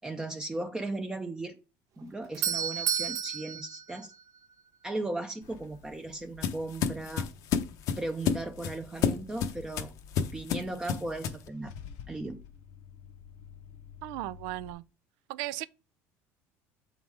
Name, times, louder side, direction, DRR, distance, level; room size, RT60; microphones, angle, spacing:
voice 1, 0.0-1.6 2.0-4.1 4.8-7.3 8.0-9.9 10.3-11.7 12.1-12.4, right 2 dB, 10° right, 0.6 m, -36 dB
Doorbell, 2.0-4.8, right 8 dB, 55° right, 0.8 m, -33 dB
sound 1, 5.4-11.5, left 7 dB, 60° left, 0.8 m, -32 dB
Car / Engine starting / Idling, 11.2-14.7, left 8 dB, 85° left, 1.1 m, -48 dB
voice 2, 14.0-14.8 15.3-15.7, right 17 dB, 80° right, 0.4 m, -36 dB
7.2 x 4.0 x 4.7 m
cardioid pair, 120°, 6 cm